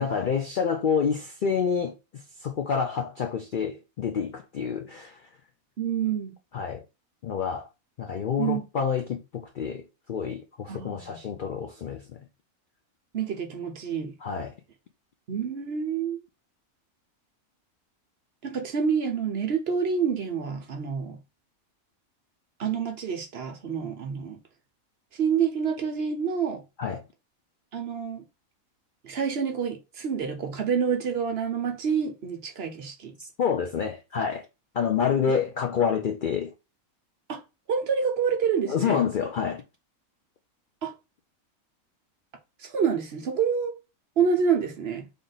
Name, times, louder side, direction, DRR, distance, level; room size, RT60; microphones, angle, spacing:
voice 1, 0.0-1.9 2.4-5.2 6.5-6.8 7.2-7.7 8.0-9.8 10.1-12.2 14.2-14.5 26.8-27.0 33.2-34.4 34.7-36.5 38.7-39.6, left 6 dB, 75° left, 0.4 m, -28 dB
voice 2, 5.8-6.3 8.4-8.7 10.7-11.2 13.1-14.1 15.3-16.2 18.4-21.2 22.6-24.4 25.1-26.6 27.7-28.2 29.0-33.1 37.3-37.4 37.7-39.0 40.8-40.9 42.6-43.8 44.2-45.1, right 6 dB, 55° right, 0.8 m, -27 dB
3.5 x 2.5 x 3.9 m
omnidirectional pair, 1.5 m